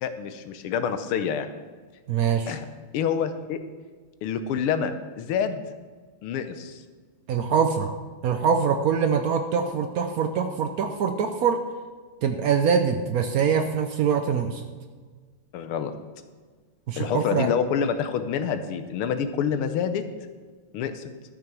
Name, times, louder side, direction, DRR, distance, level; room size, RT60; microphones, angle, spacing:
voice 1, 0.0-1.5 2.5-2.7 2.9-3.6 4.2-5.6 6.2-6.8 15.5-15.9 17.0-20.0 20.7-21.0, left 7 dB, 85° left, 10 dB, 1.7 m, -27 dB
voice 2, 2.1-2.5 7.3-7.9 8.2-11.6 12.2-14.6 16.9-17.5, right 6 dB, 90° right, 6 dB, 0.8 m, -24 dB
12.5 x 6.8 x 6.0 m, 1.5 s
omnidirectional pair, 2.4 m